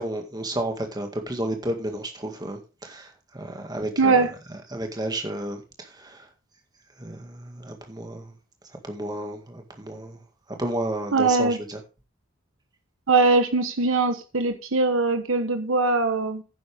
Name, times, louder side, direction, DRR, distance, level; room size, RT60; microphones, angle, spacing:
voice 1, 0.0-3.1 3.3-4.2 4.7-5.6 6.0-6.2 7.0-8.3 8.8-10.2 10.6-11.8, right 1 dB, 20° right, 1.9 m, -31 dB
voice 2, 4.0-4.3 11.1-11.6 13.1-16.4, right 3 dB, 75° right, 1.1 m, -21 dB
11.0 x 9.8 x 3.5 m
head